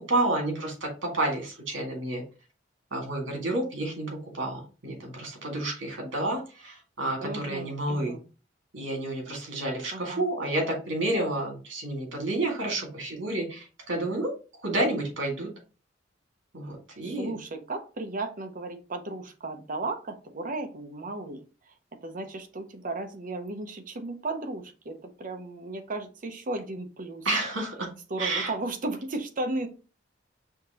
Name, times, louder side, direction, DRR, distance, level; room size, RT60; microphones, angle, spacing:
voice 1, 0.1-2.2 2.9-8.1 8.7-14.3 14.6-15.5 16.5-17.3 27.3-27.9 28.2-28.5, right 2 dB, 80° right, 1 dB, 1.9 m, -30 dB
voice 2, 7.2-8.2 9.9-10.3 17.2-21.7 22.0-27.3 28.1-29.7, right 2 dB, 45° right, 6 dB, 0.7 m, -35 dB
5.7 x 2.8 x 2.9 m, 0.34 s
head